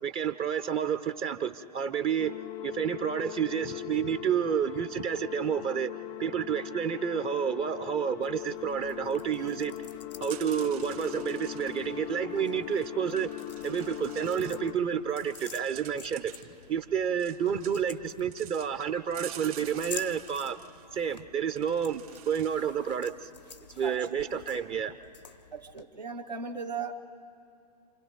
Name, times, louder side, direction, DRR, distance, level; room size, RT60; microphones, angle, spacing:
voice 1, 0.0-2.3 2.6-5.9 6.2-9.8 10.2-13.3 13.6-16.3 16.7-20.6 20.9-23.3 23.8-24.9, right 8 dB, 25° right, 11 dB, 0.6 m, -30 dB
sound 1, 2.2-14.8, left 18 dB, 30° left, 0.4 m, -40 dB
sound 2, 8.2-25.8, left 6 dB, 80° left, 0.9 m, -50 dB
sound 3, 10.1-12.1 12.7-12.9 13.2-14.6 15.1-16.9 17.2-17.8 18.3-20.9 21.6-22.5, right 12 dB, 60° right, 2.0 m, -48 dB
voice 2, 25.5-26.9, right 5 dB, 85° right, 0 dB, 2.0 m, -37 dB
27.5 x 27.5 x 4.0 m, 2.5 s
figure-of-eight pair, 105°, 21 cm